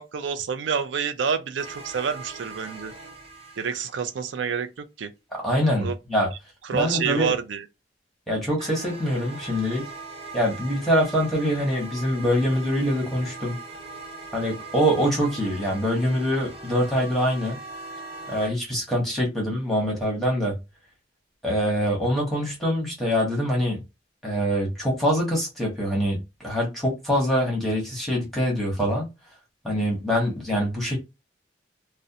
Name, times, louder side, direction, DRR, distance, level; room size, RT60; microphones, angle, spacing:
voice 1, 0.0-2.9 3.6-5.1 5.8-6.0 6.7-7.7, right 6 dB, 80° right, 0.4 m, -28 dB
sound 1, 1.6-4.3 8.6-18.5, right 3 dB, 35° right, 0.6 m, -40 dB
voice 2, 5.4-6.3 6.7-7.3 8.3-9.8 10.3-13.6 14.3-17.6 18.3-20.5 21.4-23.8 24.2-29.1 29.6-31.0, equal, ahead, 0.9 m, -24 dB
2.4 x 2.1 x 2.7 m
head